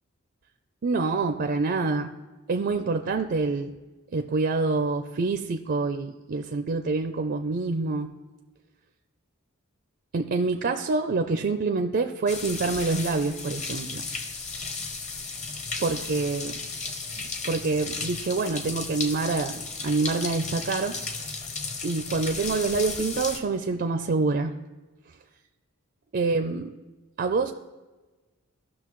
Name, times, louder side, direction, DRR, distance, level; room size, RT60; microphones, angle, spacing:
voice 1, 0.8-2.1 2.5-3.7 4.1-8.1 10.1-14.1 15.8-16.6 17.2-21.0 21.8-24.5 26.1-26.7 27.2-27.5, right 3 dB, 45° right, 6 dB, 0.4 m, -26 dB
sound 1, 12.3-23.4, left 4 dB, 30° left, 0.8 m, -34 dB
15.5 x 6.2 x 3.1 m, 1.2 s
head